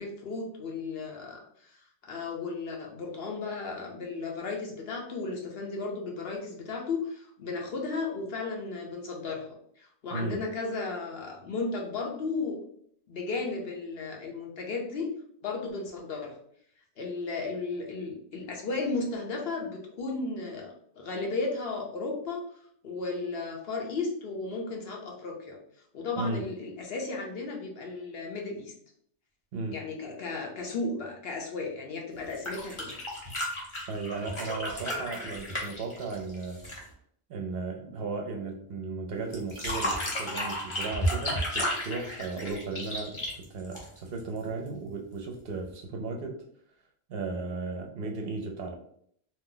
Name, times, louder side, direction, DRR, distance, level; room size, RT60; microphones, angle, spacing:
voice 1, 0.0-12.6 13.1-15.1 15.4-16.3 17.0-22.4 22.8-25.6 25.9-28.7 29.7-32.9, left 3 dB, 65° left, 0 dB, 0.9 m, -34 dB
voice 2, 10.1-10.4 26.2-26.5 29.5-29.8 33.9-36.6 37.3-46.4 47.1-48.8, right 3 dB, 65° right, 3 dB, 0.7 m, -35 dB
sound 1, 32.2-36.9 39.3-44.2 45.6-45.7, equal, 30° left, 0.8 m, -33 dB
2.6 x 2.0 x 3.7 m, 0.67 s
omnidirectional pair, 1.1 m